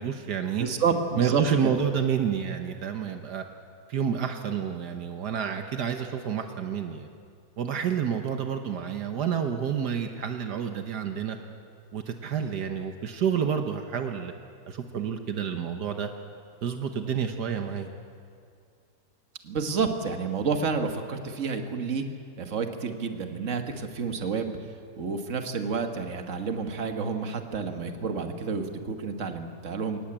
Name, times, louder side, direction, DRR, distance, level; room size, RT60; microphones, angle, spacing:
voice 1, 0.0-0.7 1.2-3.4 3.9-7.1 7.6-11.4 11.9-14.3 14.7-16.1 16.6-17.9, right 7 dB, 75° right, 6 dB, 1.7 m, -29 dB
voice 2, 0.6-1.8 19.4-22.1 22.4-24.5 25.0-30.0, right 5 dB, 50° right, 6 dB, 1.8 m, -29 dB
22.5 x 19.0 x 8.8 m, 2.3 s
omnidirectional pair, 1.8 m